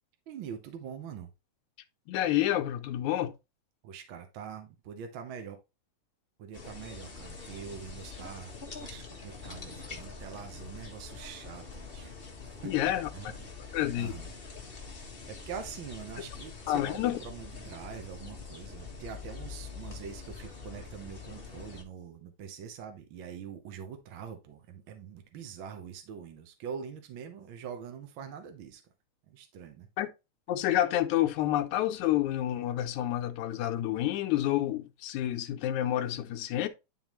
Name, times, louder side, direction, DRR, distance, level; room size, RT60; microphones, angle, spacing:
voice 1, 0.3-1.3 3.8-5.6 6.4-12.1 12.4-12.7 13.1-14.3 15.3-28.8 29.3-29.9, right 7 dB, 60° right, 1.4 m, -44 dB
voice 2, 2.1-3.3 12.6-13.1 13.7-14.2 16.7-17.2 30.0-30.1 30.5-36.7, left 13 dB, 85° left, 2.2 m, -29 dB
sound 1, 6.5-21.8, left 4 dB, 35° left, 0.8 m, -45 dB
11.0 x 3.8 x 3.0 m
omnidirectional pair, 3.3 m